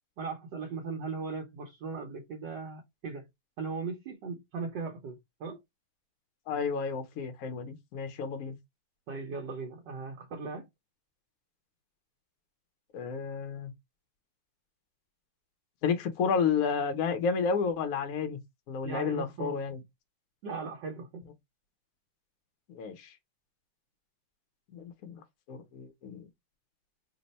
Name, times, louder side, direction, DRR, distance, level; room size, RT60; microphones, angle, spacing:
voice 1, 0.2-3.3 3.6-5.6 9.1-10.7 18.8-19.5 20.4-21.2, right 4 dB, 80° right, 1.5 m, -38 dB
voice 2, 6.5-8.6 12.9-13.7 15.8-18.4 18.7-19.8 22.7-23.1 24.7-25.2 25.5-26.3, left 6 dB, 65° left, 1.1 m, -31 dB
3.5 x 2.1 x 4.0 m
omnidirectional pair, 1.9 m